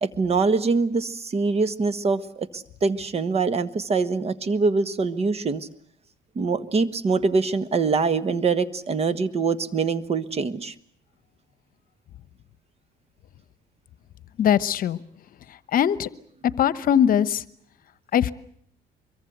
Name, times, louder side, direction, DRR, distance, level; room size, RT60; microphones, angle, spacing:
voice 1, 0.0-5.7 6.3-10.7, right 4 dB, 35° right, 14 dB, 1.5 m, -24 dB
voice 2, 14.4-15.0 15.7-16.1 16.6-17.4 18.1-18.3, left 9 dB, 55° left, 17 dB, 1.0 m, -20 dB
24.0 x 23.0 x 8.0 m, 0.63 s
cardioid pair, 110°, 17 cm